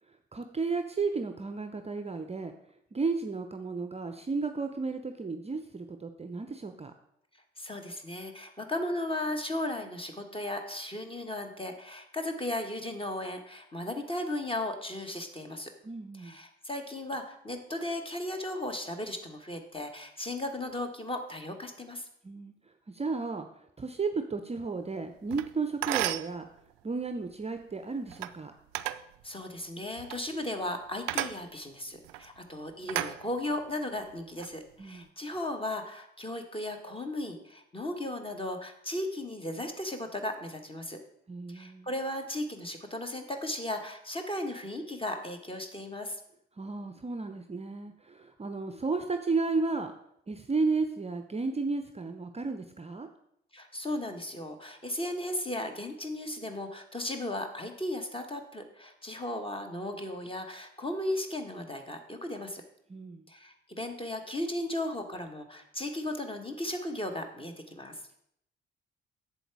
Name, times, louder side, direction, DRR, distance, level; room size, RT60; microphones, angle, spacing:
voice 1, 0.3-2.5 2.9-6.9 15.8-16.4 22.2-22.5 22.9-26.5 26.8-28.5 34.8-35.1 41.3-41.9 46.6-49.9 50.3-53.1 62.9-63.3, right 4 dB, 20° right, 7 dB, 0.7 m, -33 dB
voice 2, 7.6-15.7 16.2-22.1 29.2-41.0 41.5-46.2 53.5-62.6 63.3-68.0, left 1 dB, 15° left, 5 dB, 1.5 m, -36 dB
sound 1, 25.3-25.5 25.8-26.3 28.1-28.3 28.7-29.0 30.0-30.2 31.1-31.4 32.0-32.3 32.9-33.7 34.2-34.5, right 15 dB, 75° right, 0.4 m, -33 dB
7.9 x 7.0 x 4.7 m, 0.73 s
figure-of-eight pair, 45°, 30 cm